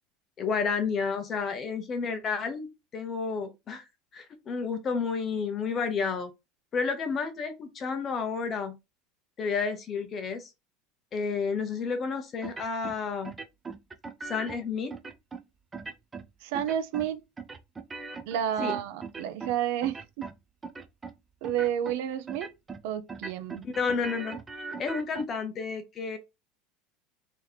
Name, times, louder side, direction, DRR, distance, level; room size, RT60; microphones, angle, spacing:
voice 1, 0.4-3.8 4.1-6.3 6.7-8.7 9.4-10.5 11.1-13.3 14.2-15.0 18.6-18.7 23.6-24.4 24.8-26.2, left 5 dB, 25° left, 0.7 m, -31 dB
sound 1, 12.4-13.0 13.2-14.6 14.9-15.4 15.7-16.3 16.5-17.1 17.4-19.6 19.8-20.4 20.6-21.1 21.4-22.0 22.3-22.8 23.1-25.2, right 4 dB, 15° right, 0.4 m, -40 dB
voice 2, 16.4-17.2 18.3-20.3 21.4-22.5 22.8-23.7, right 10 dB, 65° right, 0.6 m, -30 dB
3.1 x 2.8 x 4.0 m
cardioid pair, 170°, 0 cm